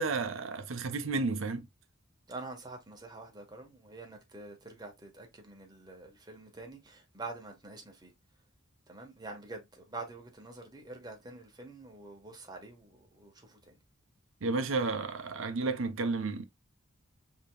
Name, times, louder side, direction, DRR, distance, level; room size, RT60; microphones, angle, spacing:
voice 1, 0.0-1.7 14.4-16.4, right 3 dB, 75° right, 0.7 m, -32 dB
voice 2, 2.3-8.1 8.9-13.8, right 3 dB, 20° right, 1.1 m, -46 dB
5.2 x 2.9 x 2.2 m
head